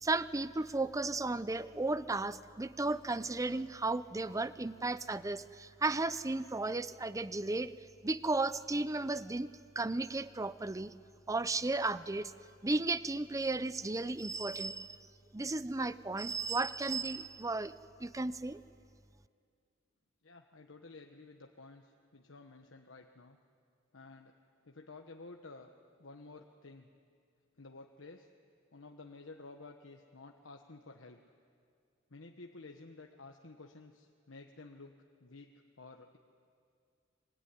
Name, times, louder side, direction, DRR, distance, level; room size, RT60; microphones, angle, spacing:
voice 1, 0.0-7.7 8.0-9.5 9.8-10.9 11.3-12.3 12.6-15.0 15.3-17.7 18.0-18.6, right 2 dB, 15° right, 15 dB, 0.6 m, -34 dB
voice 2, 20.2-23.4 23.9-24.3 24.6-25.7 26.0-26.9 27.6-28.3 28.7-31.2 32.1-36.2, left 3 dB, 90° left, 3 dB, 1.3 m, -52 dB
25.0 x 22.5 x 10.0 m, 2.3 s
head